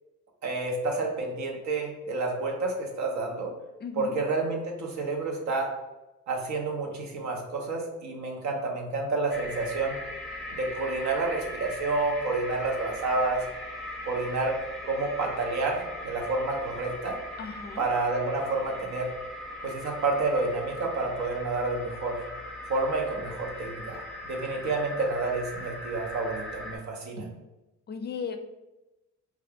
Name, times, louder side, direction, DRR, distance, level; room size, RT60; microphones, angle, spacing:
voice 1, 0.4-3.5 4.0-5.7 6.3-10.0 10.5-13.4 14.1-14.6 14.9-17.2 17.8-19.1 19.6-22.2 22.7-27.3, right 3 dB, 70° right, 1 dB, 0.8 m, -29 dB
voice 2, 3.8-4.1 17.4-17.8 27.9-28.4, left 6 dB, 35° left, 7 dB, 0.4 m, -36 dB
sound 1, 9.3-26.8, left 1 dB, ahead, 0.7 m, -40 dB
2.7 x 2.3 x 3.4 m, 1.0 s
cardioid pair, 90°, 30 cm